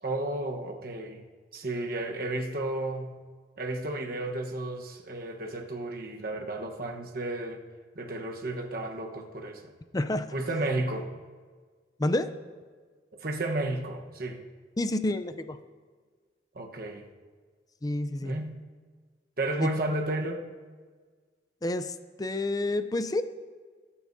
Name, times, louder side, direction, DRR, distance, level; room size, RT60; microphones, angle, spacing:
voice 1, 0.0-1.2 1.5-3.1 3.6-7.6 7.9-9.6 10.3-11.1 13.2-14.4 16.5-17.0 18.2-18.6 19.4-20.4, right 2 dB, 55° right, 2 dB, 1.1 m, -32 dB
voice 2, 9.9-10.3 12.0-12.3 14.8-15.6 17.8-18.4 19.6-19.7 21.6-23.2, left 2 dB, 20° left, 10 dB, 0.5 m, -29 dB
23.5 x 8.5 x 2.7 m, 1.5 s
head